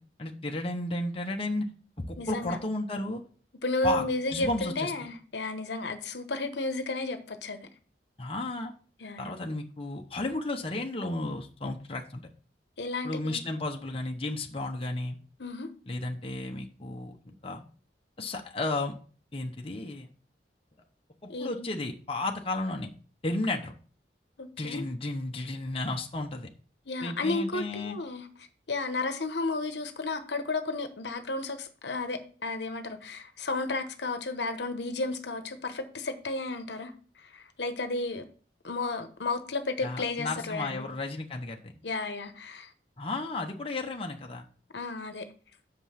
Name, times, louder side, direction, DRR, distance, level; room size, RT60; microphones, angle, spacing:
voice 1, 0.2-1.7 2.1-3.2 3.8-4.9 8.2-8.7 9.2-12.2 13.0-15.2 15.9-17.6 18.2-18.9 19.3-20.1 21.2-22.9 23.2-23.7 24.6-26.5 27.0-28.0 39.8-41.8 43.0-44.4, left 2 dB, 35° left, 0.9 m, -33 dB
voice 2, 2.2-2.6 3.6-7.6 9.0-9.5 12.8-13.4 15.4-15.7 21.3-21.7 24.4-24.8 26.9-28.3 28.7-36.9 37.3-38.2 38.6-40.8 41.8-42.7 44.7-45.3, left 3 dB, 70° left, 1.1 m, -33 dB
6.7 x 5.3 x 5.7 m
head